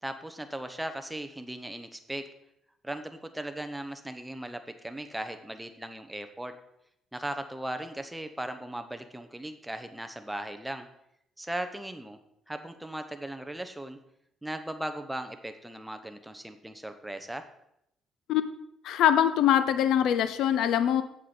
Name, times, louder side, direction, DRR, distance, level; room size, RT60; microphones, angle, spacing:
voice 1, 0.0-2.3 2.8-6.5 7.1-10.9 11.4-12.2 12.5-14.0 14.4-17.4, right 1 dB, 5° right, 8 dB, 0.9 m, -38 dB
voice 2, 18.8-21.0, left 10 dB, 80° left, 11 dB, 0.6 m, -23 dB
8.1 x 7.3 x 4.3 m, 0.78 s
cardioid pair, 100°, 0 cm